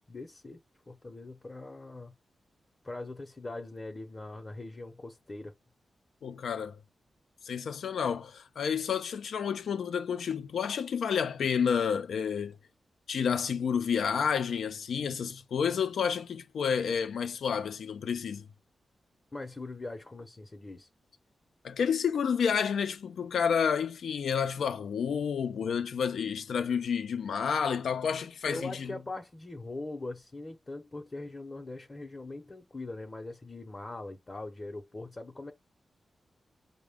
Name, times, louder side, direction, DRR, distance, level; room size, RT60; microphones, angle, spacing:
voice 1, 0.1-0.6 0.9-2.1 2.8-5.5 19.3-20.9 28.5-35.5, left 2 dB, 30° left, 0.7 m, -41 dB
voice 2, 6.2-6.8 7.4-12.6 13.1-18.5 21.6-29.0, left 7 dB, 85° left, 0.4 m, -30 dB
4.8 x 2.1 x 3.5 m
cardioid pair, 85°, 0 cm